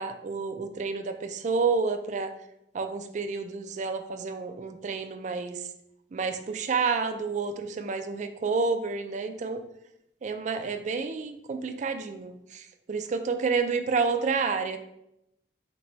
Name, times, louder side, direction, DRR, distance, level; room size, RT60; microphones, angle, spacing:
voice 1, 0.0-2.3 2.7-5.6 6.1-9.6 10.2-14.8, right 4 dB, 45° right, 8 dB, 0.3 m, -29 dB
4.0 x 2.2 x 4.2 m, 0.81 s
head